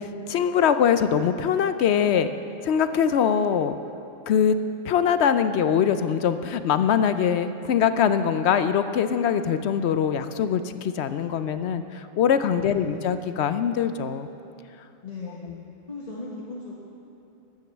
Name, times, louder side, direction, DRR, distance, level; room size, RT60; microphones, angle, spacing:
voice 1, 0.0-2.3 2.6-3.8 4.3-4.6 4.8-14.3, left 8 dB, 65° left, 11 dB, 0.7 m, -23 dB
voice 2, 12.6-13.2 15.0-16.8, left 3 dB, 30° left, -6 dB, 1.4 m, -38 dB
11.0 x 9.2 x 7.2 m, 2.7 s
omnidirectional pair, 1.4 m